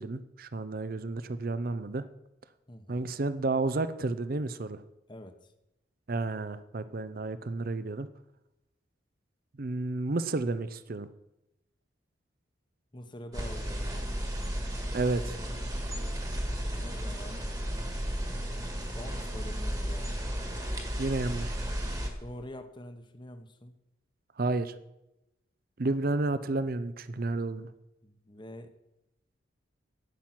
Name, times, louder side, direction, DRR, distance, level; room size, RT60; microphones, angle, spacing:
voice 1, 0.0-2.0 2.9-4.8 6.1-8.1 9.6-11.1 14.9-15.4 21.0-21.6 24.4-24.7 25.8-27.7, right 2 dB, 50° right, 14 dB, 0.6 m, -31 dB
voice 2, 2.7-3.1 5.1-5.5 12.9-14.8 16.8-17.5 18.9-20.2 22.2-23.7 28.0-28.7, left 1 dB, 25° left, 8 dB, 1.0 m, -46 dB
sound 1, 13.3-22.1, equal, 20° right, 1.6 m, -34 dB
12.0 x 8.8 x 6.0 m, 0.91 s
head